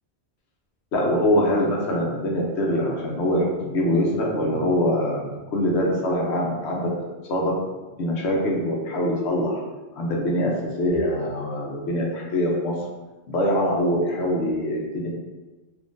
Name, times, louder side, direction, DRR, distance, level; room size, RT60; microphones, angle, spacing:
voice 1, 0.9-5.3 5.5-6.9 7.3-7.5 8.0-9.6 9.9-10.5 10.8-12.7 13.3-15.1, left 1 dB, 70° left, -2 dB, 0.9 m, -23 dB
3.7 x 2.6 x 2.5 m, 1.2 s
omnidirectional pair, 1.2 m